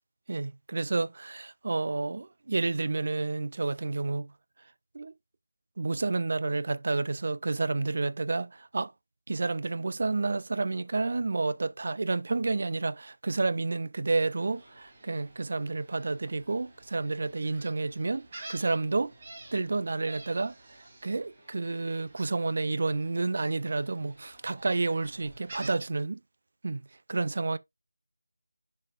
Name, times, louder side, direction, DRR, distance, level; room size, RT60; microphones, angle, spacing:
voice 1, 0.3-4.3 4.9-5.1 5.8-8.9 9.3-19.1 19.5-20.5 21.0-26.2 26.6-26.8 27.1-27.6, right 3 dB, 50° right, 0.5 m, -30 dB
Gull seagull, 14.1-25.7, right 2 dB, 30° right, 2.9 m, -50 dB
10.5 x 4.2 x 2.4 m
figure-of-eight pair, 165°, 0 cm